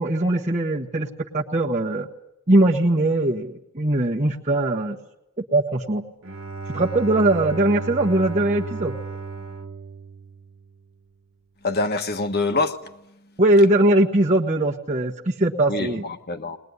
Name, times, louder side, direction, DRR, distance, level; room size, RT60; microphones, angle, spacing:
voice 1, 0.0-2.1 2.5-5.0 5.5-6.0 6.7-8.9 13.4-16.0, right 1 dB, 35° right, 1.3 m, -20 dB
Bowed string instrument, 6.2-10.9, right 4 dB, 70° right, 1.6 m, -34 dB
voice 2, 11.6-13.3 15.7-16.6, left 3 dB, 50° left, 1.4 m, -26 dB
21.0 x 20.5 x 9.7 m
head